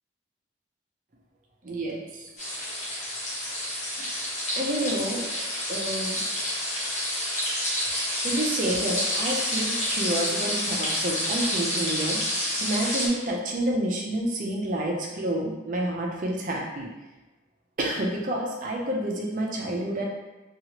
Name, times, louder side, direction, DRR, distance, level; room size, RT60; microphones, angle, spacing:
voice 1, 1.6-2.3 4.0-4.3 4.5-5.2 5.7-6.2 8.2-12.2 12.6-16.9 17.8-20.1, right 1 dB, 45° right, -1 dB, 0.4 m, -29 dB
sound 1, 2.4-13.1, left 1 dB, 40° left, 0.7 m, -29 dB
2.9 x 2.4 x 2.8 m, 1.1 s
head